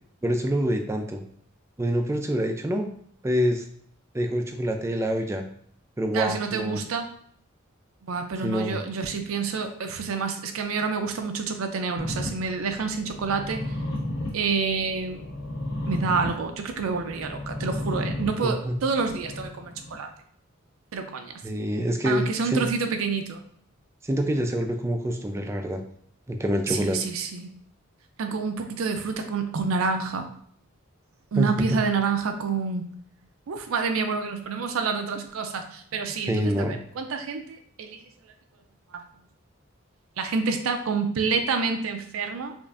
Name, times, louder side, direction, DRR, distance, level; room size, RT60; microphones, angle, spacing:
voice 1, 0.2-1.2 1.8-2.9 3.2-3.6 4.1-5.4 6.0-6.8 8.4-8.8 18.4-18.7 21.4-22.7 24.0-25.8 26.3-27.0 31.4-31.8 36.3-36.8, equal, 15° right, 5 dB, 0.3 m, -26 dB
voice 2, 6.1-7.1 8.0-13.6 14.3-15.2 15.9-20.1 20.9-21.3 22.0-23.4 26.7-27.5 28.2-30.3 31.3-32.9 33.5-38.0 38.9-39.0 40.2-42.5, right 5 dB, 85° right, 6 dB, 0.4 m, -28 dB
sound 1, 12.0-19.9, left 1 dB, 70° left, 1.4 m, -34 dB
5.2 x 2.5 x 2.4 m, 0.63 s
head